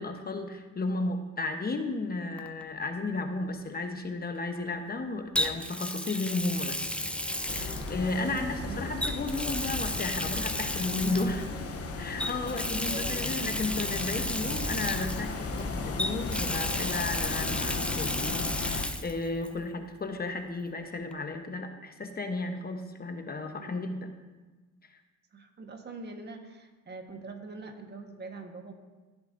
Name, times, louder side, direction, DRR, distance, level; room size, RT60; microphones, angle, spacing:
voice 1, 0.0-6.8 7.4-11.5 12.0-24.1 24.8-25.0, left 3 dB, 30° left, 6 dB, 1.0 m, -34 dB
Water tap faucet, 2.4-2.6 5.4-8.4 9.0-11.5 12.2-15.6 16.0-19.1 19.4-19.5 21.1-21.2, left 1 dB, 5° left, 0.5 m, -33 dB
sound 1, 6.2-20.2, right 2 dB, 20° right, 1.1 m, -43 dB
sound 2, 7.5-18.9, left 4 dB, 50° left, 0.9 m, -36 dB
voice 2, 8.2-8.8 12.5-13.3 23.6-23.8 25.3-28.7, right 3 dB, 35° right, 4 dB, 1.4 m, -43 dB
15.5 x 7.9 x 2.7 m, 1.2 s
cardioid pair, 90°, 30 cm